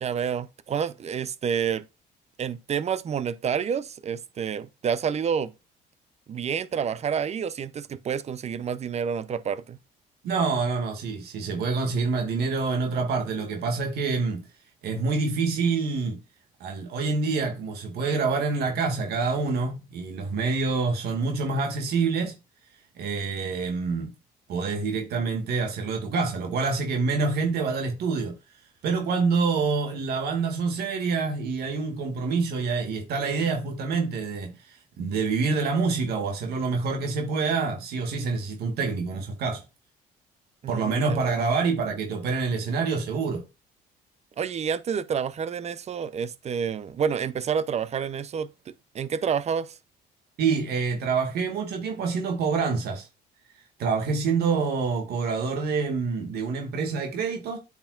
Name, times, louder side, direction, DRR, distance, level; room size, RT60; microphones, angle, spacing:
voice 1, 0.0-1.8 2.4-5.5 6.3-9.8 40.6-41.4 44.4-49.8, right 7 dB, 40° right, 0.7 m, -29 dB
voice 2, 10.2-14.4 14.8-16.2 16.6-22.3 23.0-24.1 24.5-28.4 28.8-39.6 40.7-43.4 50.4-53.1 53.8-57.6, right 4 dB, 70° right, 2.1 m, -26 dB
8.8 x 5.9 x 2.5 m
cardioid pair, 110°, 17 cm